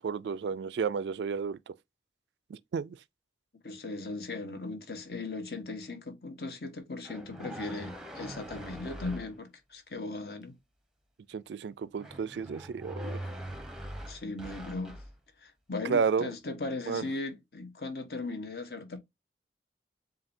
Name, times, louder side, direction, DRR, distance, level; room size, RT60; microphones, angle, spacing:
voice 1, 0.0-1.7 2.5-3.0 11.3-13.2 15.8-16.3 16.9-17.0, right 6 dB, 80° right, 0.3 m, -32 dB
voice 2, 3.6-10.5 14.1-15.0 15.4-19.0, left 3 dB, 60° left, 1.3 m, -38 dB
sound 1, 7.0-9.3 12.0-15.1, equal, 5° right, 0.7 m, -42 dB
7.5 x 2.7 x 2.7 m
head